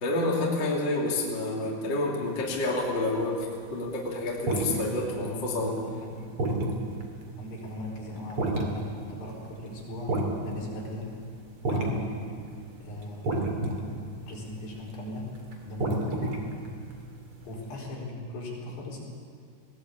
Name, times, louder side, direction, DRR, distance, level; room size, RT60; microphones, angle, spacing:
voice 1, 0.0-5.7, left 2 dB, 30° left, -3 dB, 2.6 m, -29 dB
sound 1, 2.3-3.3 3.7-11.3 11.6-12.2 12.5-17.7, right 2 dB, 40° right, 2.1 m, -31 dB
voice 2, 5.1-6.3 7.4-10.2 10.4-11.1 11.7-12.4 12.8-13.4 13.8-13.9 14.3-15.3 15.6-16.3 17.4-19.0, left 1 dB, 55° left, -4 dB, 6.4 m, -39 dB
21.0 x 18.0 x 8.5 m, 2.2 s
omnidirectional pair, 5.9 m